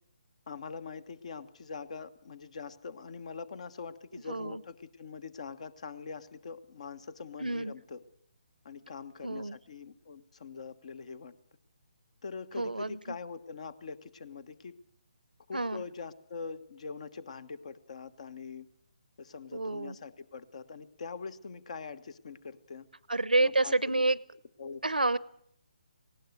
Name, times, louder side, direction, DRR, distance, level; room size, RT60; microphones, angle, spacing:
voice 1, 0.5-8.0 8.6-11.3 12.2-14.8 15.5-18.7 19.2-22.9 23.4-24.0 24.6-24.8, left 5 dB, 50° left, 17 dB, 1.4 m, -43 dB
voice 2, 4.1-4.6 7.4-7.7 9.2-9.6 12.6-13.0 15.5-15.8 19.5-20.0 23.1-24.2 24.8-25.2, right 2 dB, 85° right, 21 dB, 0.8 m, -29 dB
19.5 x 17.5 x 8.0 m, 0.69 s
figure-of-eight pair, 145°, 5 cm